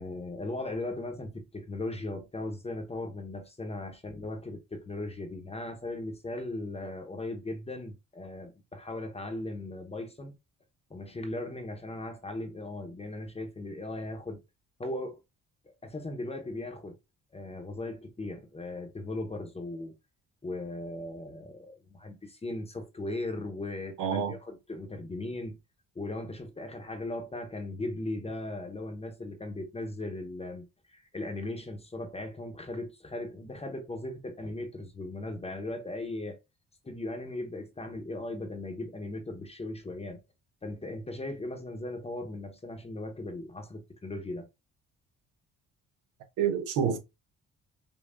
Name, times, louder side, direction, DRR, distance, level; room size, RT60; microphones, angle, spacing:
voice 1, 0.0-10.3 10.9-14.4 14.8-15.2 15.8-17.0 17.3-19.9 20.4-25.6 25.9-36.4 36.8-40.2 40.6-44.5, left 2 dB, 20° left, 0.9 m, -38 dB
voice 2, 24.0-24.4 46.4-47.0, right 7 dB, 90° right, 0.9 m, -27 dB
5.4 x 2.3 x 2.5 m
cardioid pair, 90°, 30 cm